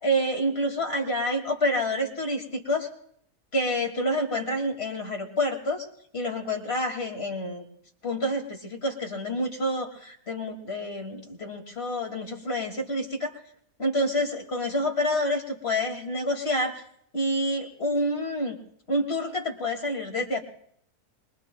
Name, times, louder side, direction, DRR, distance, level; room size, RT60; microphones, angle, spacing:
voice 1, 0.0-2.9 3.5-5.9 6.1-7.7 8.0-13.3 13.8-16.8 17.1-18.6 18.9-20.4, left 1 dB, 40° left, 2 dB, 2.6 m, -28 dB
26.5 x 23.5 x 2.3 m, 0.68 s
omnidirectional pair, 1.6 m